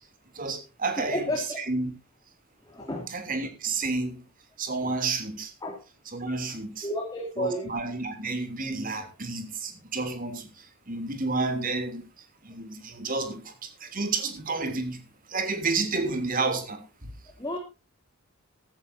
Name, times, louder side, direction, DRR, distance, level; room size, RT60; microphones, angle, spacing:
voice 1, 0.3-1.9 3.1-4.2 4.6-5.5 6.1-6.9 7.4-10.5 10.9-12.0 12.4-15.0 15.3-16.8, right 3 dB, 40° right, 3.2 m, -30 dB
voice 2, 1.0-1.6 2.6-3.1 4.8-4.9 5.6-5.8 6.8-7.7 17.4-17.6, left 1 dB, 15° left, 3.1 m, -31 dB
14.5 x 14.5 x 2.8 m
head